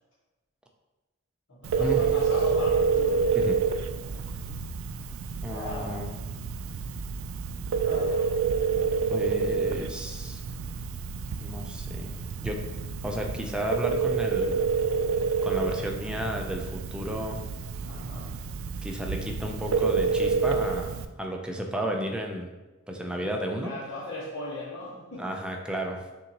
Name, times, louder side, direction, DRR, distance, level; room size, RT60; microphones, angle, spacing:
voice 1, 1.5-3.3 4.0-4.3 5.5-6.0 7.7-8.3 17.8-18.3 23.1-25.2, left 2 dB, 65° left, -11 dB, 1.2 m, -39 dB
Telephone, 1.6-21.0, right 5 dB, 85° right, 0.3 m, -28 dB
voice 2, 5.4-6.1 9.1-10.4 11.4-12.6 13.0-14.6 15.4-17.4 18.8-20.9 21.2-22.5 22.9-23.7 25.2-26.0, equal, 5° right, 1 dB, 0.4 m, -33 dB
5.6 x 2.6 x 2.9 m, 1.2 s
head